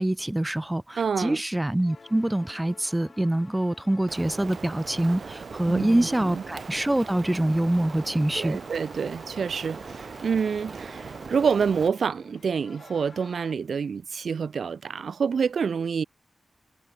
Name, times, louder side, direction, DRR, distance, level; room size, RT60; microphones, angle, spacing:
voice 1, 0.0-8.6, right 1 dB, 10° right, 1.5 m, -25 dB
voice 2, 1.0-1.4 5.7-6.4 8.3-16.0, right 6 dB, 80° right, 1.1 m, -27 dB
sound 1, 1.7-13.6, left 4 dB, 45° left, 7.4 m, -51 dB
Rain, 4.1-11.9, right 5 dB, 60° right, 2.4 m, -40 dB
wide cardioid pair, 140°, 0 cm